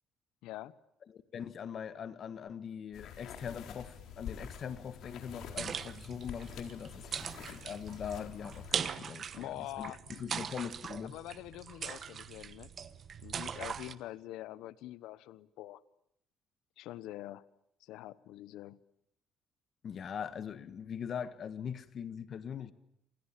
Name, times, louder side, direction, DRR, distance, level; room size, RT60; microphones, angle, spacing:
voice 1, 0.4-0.8 9.3-10.4 11.0-12.7 13.2-15.8 16.8-17.4 17.8-18.8, left 15 dB, 85° left, 1.0 m, -45 dB
voice 2, 1.1-11.2 19.8-22.7, left 7 dB, 40° left, 1.5 m, -42 dB
sound 1, 2.9-8.7, left 7 dB, 65° left, 4.1 m, -47 dB
sound 2, 5.3-13.9, right 7 dB, 35° right, 1.1 m, -41 dB
28.0 x 28.0 x 7.5 m
cardioid pair, 150°, 0 cm